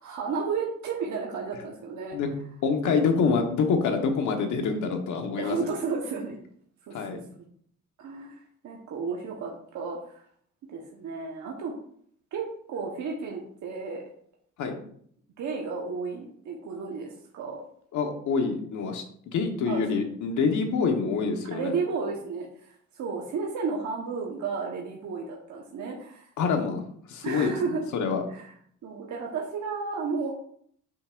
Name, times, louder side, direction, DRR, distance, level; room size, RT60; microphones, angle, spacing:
voice 1, 0.0-2.2 5.4-6.4 6.9-7.2 8.0-10.2 10.7-11.7 12.3-14.0 15.4-17.6 19.7-20.0 21.5-26.3 27.2-27.9 28.3-28.5 28.8-30.3, right 5 dB, 70° right, -1 dB, 1.2 m, -33 dB
voice 2, 2.6-5.5 6.9-7.2 14.6-14.8 17.9-21.7 26.4-27.5 27.9-28.2, left 5 dB, 75° left, 4 dB, 1.3 m, -26 dB
7.7 x 5.8 x 2.5 m, 0.63 s
cardioid pair, 90°, 30 cm